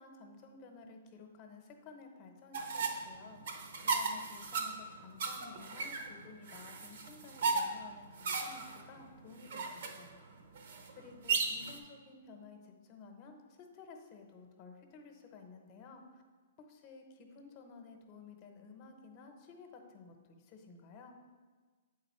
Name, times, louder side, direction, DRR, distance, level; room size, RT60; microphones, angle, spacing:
voice 1, 0.0-10.2 11.0-16.2 16.6-21.2, left 4 dB, 35° left, 4 dB, 0.8 m, -54 dB
sound 1, 2.5-11.8, right 4 dB, 65° right, 0.8 m, -37 dB
8.1 x 3.9 x 4.3 m, 1.4 s
hypercardioid pair, 145°, 0 cm